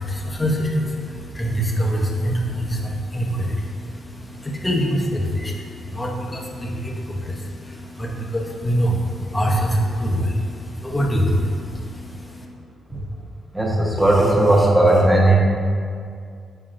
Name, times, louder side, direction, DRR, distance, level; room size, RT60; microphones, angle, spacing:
voice 1, 0.0-12.4, equal, 15° left, -1 dB, 0.8 m, -24 dB
voice 2, 13.5-15.4, right 2 dB, 5° right, -3 dB, 1.1 m, -16 dB
7.2 x 5.5 x 2.5 m, 2.2 s
cardioid pair, 100°, 0 cm